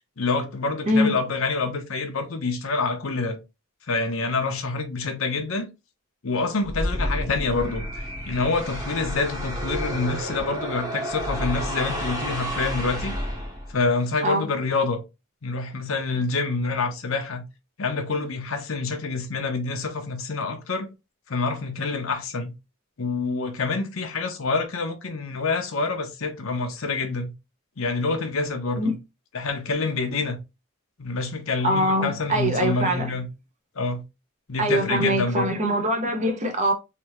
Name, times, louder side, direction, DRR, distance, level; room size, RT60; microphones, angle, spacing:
voice 1, 0.2-3.4 3.9-5.7 6.2-13.1 13.7-15.0 15.4-17.4 17.8-20.9 21.3-22.5 23.0-27.3 27.8-28.9 29.3-30.4 31.0-33.3 33.8-34.0 34.5-35.5, left 3 dB, 70° left, 0.8 m, -27 dB
sound 1, 6.6-13.9, equal, 15° right, 1.1 m, -30 dB
voice 2, 31.6-33.1 34.6-36.7, equal, 35° right, 0.8 m, -23 dB
3.3 x 2.8 x 3.0 m
head